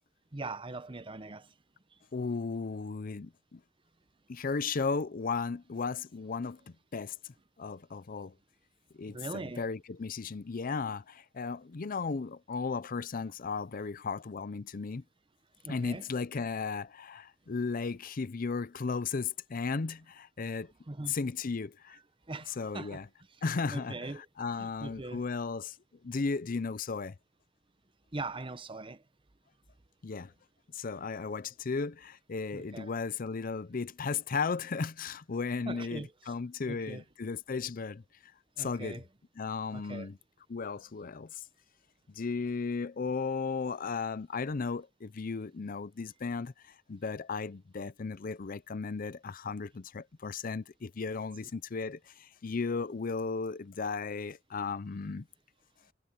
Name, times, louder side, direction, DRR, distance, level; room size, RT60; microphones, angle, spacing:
voice 1, 0.3-1.5 9.1-9.6 15.6-16.1 20.9-21.2 22.3-23.0 23.7-25.2 28.1-29.0 32.5-32.9 35.7-36.3 36.7-37.0 38.6-39.0 39.7-40.1, right 2 dB, 25° right, 0.9 m, -41 dB
voice 2, 2.1-3.6 4.3-6.6 6.9-7.2 7.6-8.3 8.9-15.0 15.7-20.7 21.1-22.0 22.6-23.1 23.4-25.8 26.0-27.1 30.0-30.3 30.7-38.0 38.6-39.0 39.4-40.2 40.5-41.4 42.1-55.3, left 4 dB, 45° left, 0.5 m, -35 dB
head